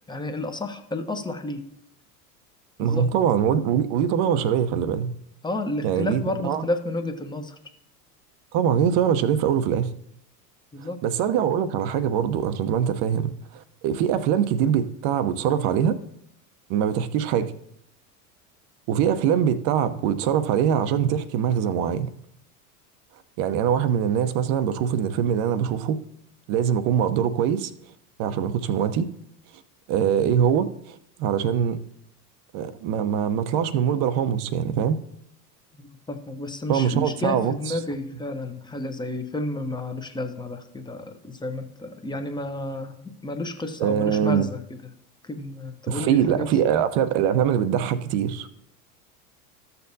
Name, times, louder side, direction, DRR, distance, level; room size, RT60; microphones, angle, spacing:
voice 1, 0.1-1.6 2.8-3.1 5.4-7.6 10.7-11.0 35.8-42.9 43.2-44.8 45.2-46.5, left 2 dB, 10° left, 6 dB, 1.0 m, -31 dB
voice 2, 2.8-5.1 5.8-6.6 8.5-9.9 11.0-16.0 16.7-17.5 18.9-22.1 23.4-26.0 26.5-27.7 28.2-29.1 29.9-31.8 32.5-35.0 36.7-37.8 43.8-44.5 45.9-48.5, right 8 dB, 55° right, 12 dB, 0.9 m, -23 dB
13.5 x 6.8 x 2.7 m, 0.73 s
hypercardioid pair, 95°, 46 cm